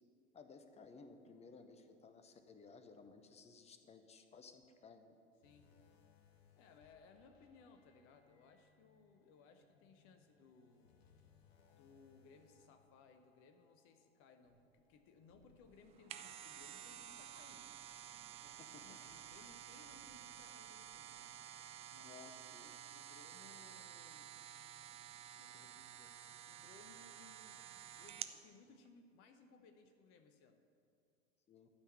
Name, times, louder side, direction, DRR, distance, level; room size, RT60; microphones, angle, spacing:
voice 1, 0.3-5.1 18.6-19.0 22.0-22.7 31.5-31.7, left 4 dB, 20° left, 7 dB, 0.9 m, -58 dB
sound 1, 5.4-16.9 17.2-17.4 18.1-18.2, left 6 dB, 65° left, 1.3 m, -72 dB
voice 2, 5.4-5.7 6.5-10.9 11.7-18.0 18.4-21.3 21.9-24.3 25.3-27.6 27.9-30.6, left 4 dB, 40° left, 6 dB, 0.9 m, -64 dB
sound 2, 14.4-29.8, right 1 dB, 70° right, 3.0 m, -77 dB
sound 3, 15.8-28.4 28.8-28.9, right 10 dB, 20° right, 0.3 m, -52 dB
12.5 x 5.8 x 7.3 m, 2.3 s
figure-of-eight pair, 80°, 34 cm